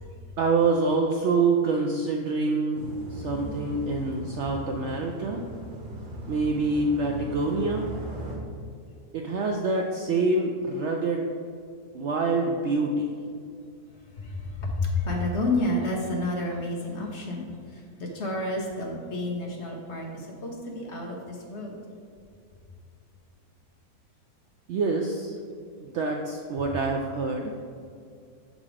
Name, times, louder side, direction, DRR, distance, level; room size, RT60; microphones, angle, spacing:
voice 1, 0.4-2.8 3.1-5.9 6.3-7.9 9.1-11.3 11.9-13.1 24.7-25.4 25.8-27.5, right 3 dB, 70° right, 1 dB, 0.7 m, -26 dB
sound 1, 2.7-8.4, equal, 30° right, 1.4 m, -38 dB
voice 2, 14.1-21.8, left 2 dB, 50° left, -1 dB, 1.1 m, -30 dB
7.3 x 3.9 x 4.9 m, 2.3 s
omnidirectional pair, 1.6 m